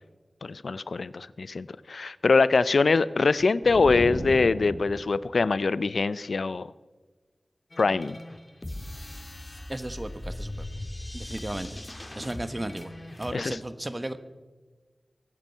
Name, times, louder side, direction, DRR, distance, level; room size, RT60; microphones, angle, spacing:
voice 1, 0.4-6.7 7.8-8.2 13.3-13.6, left 4 dB, 80° left, 17 dB, 0.4 m, -23 dB
sound 1, 3.6-5.3, right 1 dB, 75° right, 4.7 m, -34 dB
sound 2, 7.7-13.3, left 1 dB, 25° left, 1.6 m, -40 dB
voice 2, 9.7-10.7 11.1-11.8 12.2-12.9 13.2-14.2, right 1 dB, 25° right, 11 dB, 1.1 m, -34 dB
22.5 x 9.1 x 5.5 m, 1.3 s
wide cardioid pair, 60°, 0 cm